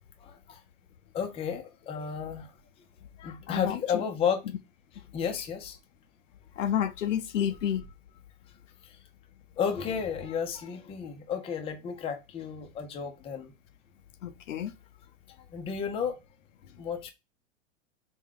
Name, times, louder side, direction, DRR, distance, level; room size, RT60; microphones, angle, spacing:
voice 1, 0.2-0.6 1.1-2.5 3.2-4.4 5.1-5.8 8.8-9.0 9.6-13.5 15.5-16.2 16.8-17.1, left 7 dB, 15° left, 0.5 m, -32 dB
voice 2, 3.5-4.0 6.6-7.8 14.2-14.7, left 9 dB, 90° left, 0.6 m, -30 dB
3.5 x 2.3 x 3.7 m
hypercardioid pair, 115°, 37 cm